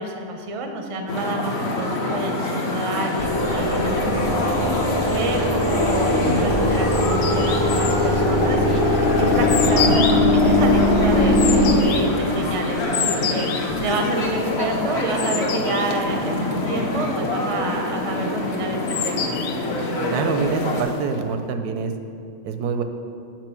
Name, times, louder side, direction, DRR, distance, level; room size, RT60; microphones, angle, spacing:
voice 1, 0.0-4.7 5.0-13.5 13.8-19.3, right 2 dB, 40° right, 3 dB, 0.4 m, -28 dB
sound 1, 1.1-20.8, left 2 dB, 50° left, 1.1 m, -25 dB
sound 2, 3.2-11.8, left 1 dB, 30° left, 0.6 m, -20 dB
sound 3, 6.4-21.3, left 7 dB, 85° left, 1.1 m, -31 dB
voice 2, 20.1-21.9 22.4-22.8, right 5 dB, 85° right, 7 dB, 1.1 m, -25 dB
6.0 x 5.2 x 6.8 m, 2.5 s
omnidirectional pair, 1.6 m